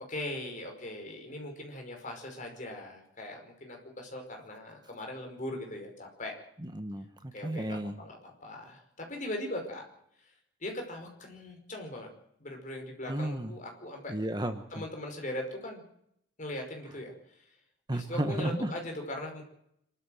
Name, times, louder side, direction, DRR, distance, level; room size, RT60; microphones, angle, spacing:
voice 1, 0.1-6.4 7.3-9.9 10.2-10.3 10.6-12.1 12.4-14.2 14.7-15.8 16.4-17.5 17.9-19.4, left 1 dB, 40° left, 2 dB, 5.3 m, -40 dB
voice 2, 6.6-8.0 13.1-13.5 14.1-14.8 17.9-18.7, right 1 dB, 20° right, 8 dB, 1.2 m, -33 dB
26.5 x 13.0 x 7.8 m, 0.75 s
head